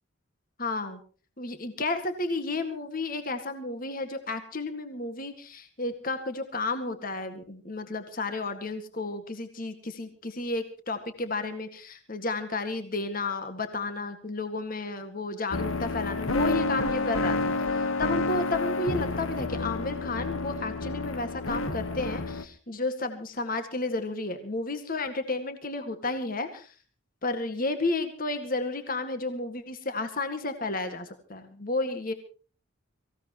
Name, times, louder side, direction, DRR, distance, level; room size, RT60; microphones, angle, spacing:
voice 1, 0.6-1.0 1.4-17.5 18.0-26.7 27.2-32.1, left 3 dB, 40° left, 8 dB, 1.9 m, -32 dB
sound 1, 15.5-22.4, left 2 dB, 80° left, 1.3 m, -29 dB
24.0 x 16.0 x 3.0 m, 0.38 s
head